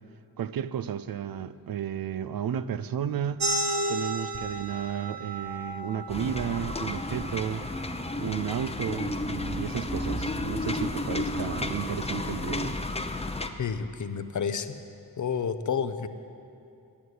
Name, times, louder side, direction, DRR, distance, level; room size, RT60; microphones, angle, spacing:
voice 1, 0.4-3.5 3.9-7.6 8.2-12.8, right 9 dB, 60° right, 14 dB, 0.5 m, -33 dB
sound 1, 3.4-8.6, right 1 dB, 80° right, 1.0 m, -34 dB
sound 2, 6.1-13.5, left 2 dB, 15° left, 0.8 m, -32 dB
sound 3, 7.1-12.6, right 4 dB, 45° right, 1.2 m, -51 dB
voice 2, 13.6-14.7 15.2-16.1, left 6 dB, 50° left, 10 dB, 0.8 m, -30 dB
10.0 x 8.6 x 9.4 m, 2.6 s
cardioid pair, 60°, 39 cm